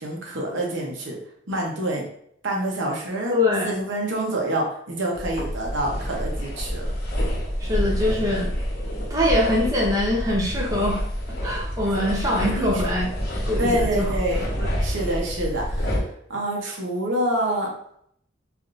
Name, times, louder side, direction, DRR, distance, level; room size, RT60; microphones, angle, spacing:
voice 1, 0.0-1.2 1.5-2.0 2.4-3.3 3.6-6.9 12.6-12.8 13.6-14.4 14.8-16.0 16.3-17.7, right 1 dB, 75° right, -1 dB, 0.8 m, -27 dB
voice 2, 3.3-3.7 7.6-8.6 9.1-11.0 11.4-13.1 13.5-14.1 14.6-14.7, left 1 dB, 20° right, -3 dB, 0.6 m, -23 dB
sound 1, 5.1-16.0, equal, 50° left, 0.8 m, -27 dB
3.4 x 2.5 x 2.4 m, 0.69 s
head